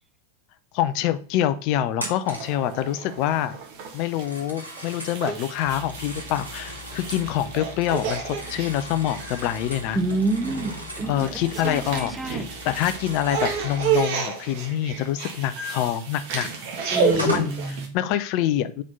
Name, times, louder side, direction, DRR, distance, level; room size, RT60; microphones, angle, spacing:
voice 1, 0.7-3.6 3.9-10.0 11.0-16.5 17.2-17.5 17.9-18.8, left 12 dB, 45° left, 12 dB, 0.5 m, -26 dB
Telephone, 2.0-2.6 4.1-5.2 5.8-7.3 7.7-12.2 12.5-14.0 16.1-16.2 16.8-17.6, right 1 dB, 85° right, 1.6 m, -38 dB
sound 1, 2.3-17.9, right 5 dB, 45° right, 1.5 m, -31 dB
sound 2, 5.6-14.1, left 2 dB, 70° right, 1.5 m, -43 dB
voice 2, 9.9-12.5 16.9-17.9, right 2 dB, 5° right, 9 dB, 0.6 m, -28 dB
4.4 x 4.2 x 5.2 m, 0.41 s
figure-of-eight pair, 90°, 0 cm